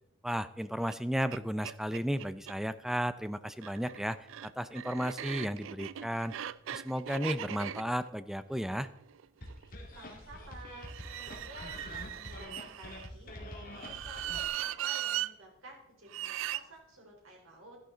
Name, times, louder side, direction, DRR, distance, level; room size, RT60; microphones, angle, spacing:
voice 1, 0.2-6.3 6.7-8.9, equal, ahead, 13 dB, 0.4 m, -34 dB
sound 1, 0.9-1.0 1.3-1.4 1.6-2.6 3.5-9.6 10.8-13.1 13.7-15.3 16.1-16.6, right 11 dB, 65° right, 0.4 m, -39 dB
sound 2, 9.4-14.5, left 1 dB, 45° left, 2.5 m, -45 dB
voice 2, 9.9-13.3 13.8-17.8, right 1 dB, 85° right, 0 dB, 4.0 m, -52 dB
13.0 x 11.0 x 3.9 m, 0.80 s
head